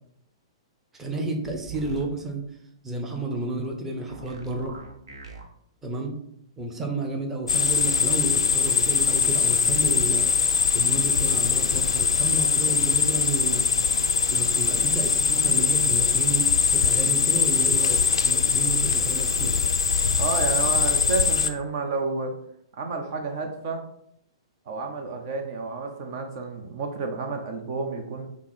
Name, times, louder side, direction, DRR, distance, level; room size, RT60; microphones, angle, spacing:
voice 1, 1.0-2.5 2.8-4.8 5.8-6.1 6.6-10.3 10.7-13.6 14.3-19.6, right 2 dB, 10° right, 2 dB, 0.7 m, -31 dB
sound 1, 1.4-2.1 4.1-5.4, right 5 dB, 65° right, 1.0 m, -41 dB
sound 2, 7.5-21.5, left 5 dB, 70° left, 0.4 m, -22 dB
voice 2, 20.2-22.3 22.7-23.8 24.7-28.3, right 4 dB, 45° right, 4 dB, 0.7 m, -30 dB
5.7 x 2.0 x 4.2 m, 0.73 s
figure-of-eight pair, 110°, 3 cm